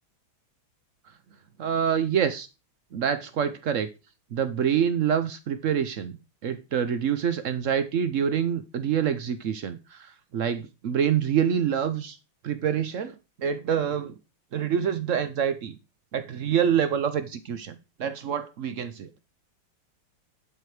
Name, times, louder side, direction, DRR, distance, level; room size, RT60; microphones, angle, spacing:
voice 1, 1.6-2.5 2.9-3.9 4.3-12.2 12.4-14.1 14.5-15.8 16.1-19.1, right 8 dB, 70° right, 0.7 m, -26 dB
11.5 x 4.7 x 4.9 m
omnidirectional pair, 2.2 m